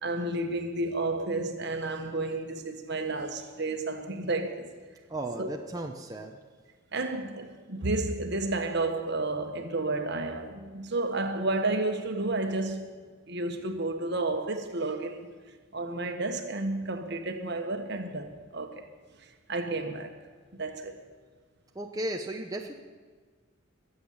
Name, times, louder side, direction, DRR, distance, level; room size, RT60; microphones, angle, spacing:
voice 1, 0.0-4.7 5.4-5.5 6.9-12.9 13.3-15.3 15.7-18.9 19.5-20.1 20.5-21.0, right 2 dB, 55° right, 1.4 m, -31 dB
voice 2, 5.1-6.4 21.7-22.7, right 1 dB, 20° right, 0.8 m, -35 dB
22.0 x 8.1 x 7.2 m
head